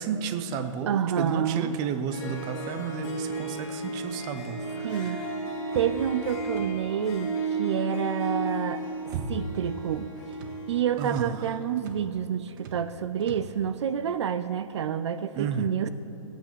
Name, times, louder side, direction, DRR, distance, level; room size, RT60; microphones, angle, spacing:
voice 1, 0.0-5.2 11.0-11.4 15.3-15.7, right 6 dB, 25° right, 9 dB, 0.7 m, -32 dB
voice 2, 0.9-1.7 4.8-5.2 5.7-8.8 9.3-10.1 10.7-15.9, right 8 dB, 60° right, 12 dB, 0.6 m, -28 dB
Harp, 2.1-11.6, right 2 dB, 30° left, 2.5 m, -34 dB
sound 1, 5.7-7.0 8.5-9.7 10.0-10.6 11.1-11.4 11.8-12.1 12.5-12.9 13.2-13.5, right 4 dB, 40° right, 1.4 m, -39 dB
16.0 x 9.0 x 6.7 m, 3.0 s
hypercardioid pair, 150°, 17 cm